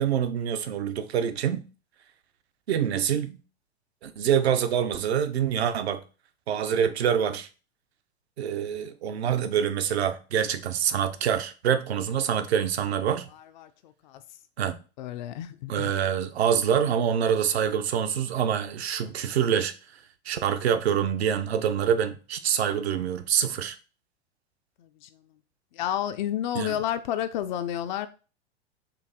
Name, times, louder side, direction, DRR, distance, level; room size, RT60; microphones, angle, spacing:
voice 1, 0.0-1.6 2.7-3.4 4.0-6.0 6.5-7.5 8.4-13.2 14.6-14.8 15.7-19.7 20.3-23.8 26.5-26.8, right 8 dB, 65° right, 0.7 m, -26 dB
voice 2, 13.6-14.2 15.0-15.9 25.0-25.1 25.8-28.1, left 11 dB, 45° left, 0.4 m, -30 dB
4.6 x 2.7 x 3.8 m
figure-of-eight pair, 100°, 34 cm